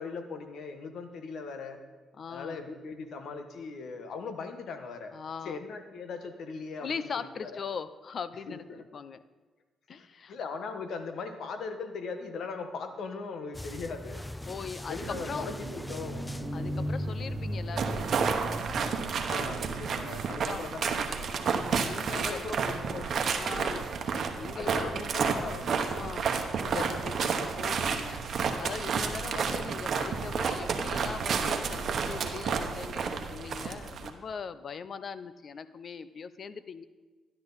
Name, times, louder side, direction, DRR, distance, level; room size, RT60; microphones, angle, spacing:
voice 1, 0.0-1.8 2.3-5.1 5.4-6.9 7.2-7.6 8.5-8.8 10.0-14.2 14.9-16.3 19.2-21.6 22.1-23.2 24.5-25.7 26.7-27.6, left 4 dB, 65° left, 7 dB, 1.3 m, -39 dB
voice 2, 2.2-2.6 5.1-5.6 6.8-9.2 9.9-10.4 14.5-15.5 16.5-18.3 20.2-20.6 21.8-22.5 23.3-23.9 24.4-25.0 25.9-26.3 27.6-28.2 28.6-36.8, left 6 dB, 50° left, 14 dB, 0.6 m, -40 dB
sound 1, 13.5-18.9, left 1 dB, 10° left, 0.3 m, -37 dB
sound 2, 15.0-20.4, right 9 dB, 70° right, 0.4 m, -43 dB
sound 3, 17.8-34.1, right 5 dB, 55° right, 1.0 m, -31 dB
13.0 x 10.5 x 4.1 m, 1.3 s
cardioid pair, 90°, 0 cm